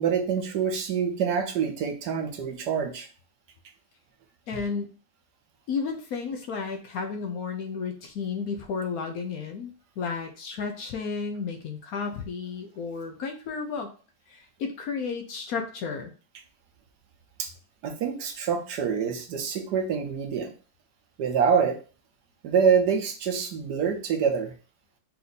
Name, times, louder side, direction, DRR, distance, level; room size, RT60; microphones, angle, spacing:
voice 1, 0.0-3.1 4.5-4.6 17.4-17.5 17.8-20.5 21.2-21.8 22.4-24.5, right 6 dB, 70° right, 4 dB, 1.3 m, -26 dB
voice 2, 4.5-4.9 5.7-13.9 14.3-16.1, left 5 dB, 65° left, 4 dB, 1.0 m, -32 dB
4.4 x 2.6 x 4.0 m, 0.37 s
omnidirectional pair, 1.8 m